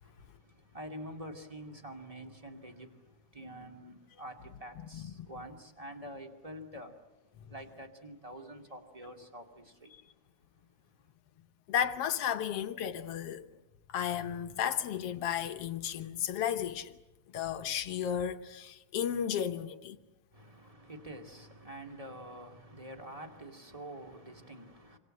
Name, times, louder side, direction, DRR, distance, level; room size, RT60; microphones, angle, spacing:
voice 1, 0.0-10.0 10.5-10.6 10.9-11.1 20.3-25.0, right 1 dB, 15° right, 2.0 m, -47 dB
voice 2, 11.7-13.5 13.9-17.0 17.3-20.0, left 9 dB, 65° left, 1.9 m, -33 dB
26.0 x 26.0 x 7.8 m
omnidirectional pair, 3.3 m